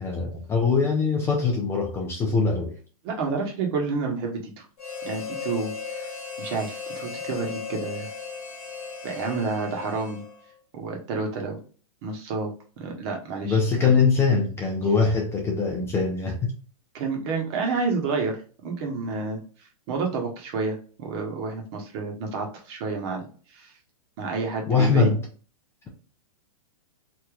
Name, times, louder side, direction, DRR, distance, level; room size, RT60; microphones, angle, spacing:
voice 1, 0.0-2.7 13.4-16.5 24.7-25.2, left 5 dB, 15° left, 1 dB, 0.6 m, -22 dB
voice 2, 3.0-4.6 5.0-6.1 6.4-8.1 9.0-10.2 10.7-11.6 12.0-13.9 16.9-23.2 23.5-23.7 24.2-25.1, right 4 dB, 45° right, 2 dB, 1.2 m, -30 dB
Harmonica, 4.8-10.6, left 5 dB, 85° left, 1.0 m, -36 dB
3.2 x 2.8 x 2.4 m, 0.38 s
hypercardioid pair, 140°, 19 cm